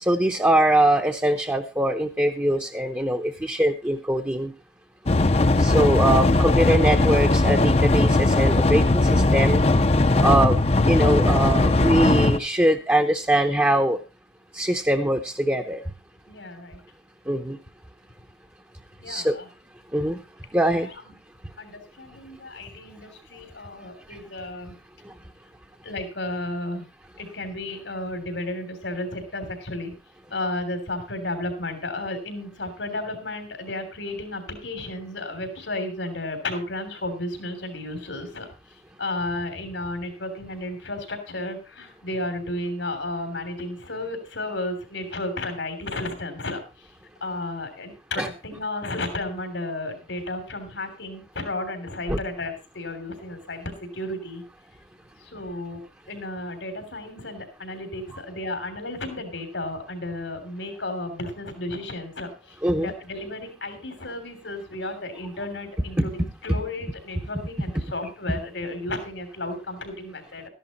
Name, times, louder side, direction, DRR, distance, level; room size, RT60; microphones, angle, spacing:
voice 1, 0.0-4.5 5.6-9.6 10.2-10.6 10.9-14.0 14.5-15.8 17.3-17.6 19.1-19.4 19.9-20.2 20.5-20.9 48.2-48.3 52.1-52.2 62.6-62.9, right 1 dB, 15° right, 1 dB, 0.8 m, -22 dB
sound 1, 5.1-12.4, left 2 dB, 35° left, 0.7 m, -19 dB
voice 2, 16.3-16.8 19.0-19.5 20.8-21.0 21.6-24.7 25.8-26.9 27.2-30.0 30.3-38.5 39.0-46.9 47.2-54.4 55.2-55.8 56.1-70.5, left 2 dB, 85° left, 8 dB, 3.2 m, -33 dB
13.0 x 11.0 x 4.2 m, 0.30 s
head